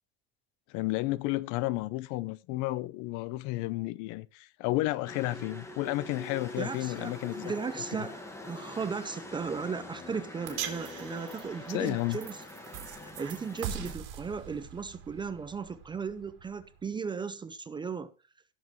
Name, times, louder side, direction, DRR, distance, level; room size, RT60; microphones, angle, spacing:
voice 1, 0.7-7.4 11.7-12.2, left 19 dB, 60° left, 0.7 m, -32 dB
sound 1, 5.1-13.9, left 2 dB, 10° left, 1.6 m, -44 dB
voice 2, 6.6-12.4 12.9-18.1, right 5 dB, 15° right, 0.5 m, -36 dB
sound 2, 10.5-16.8, right 9 dB, 75° right, 3.3 m, -42 dB
16.0 x 7.3 x 3.1 m
cardioid pair, 150°, 34 cm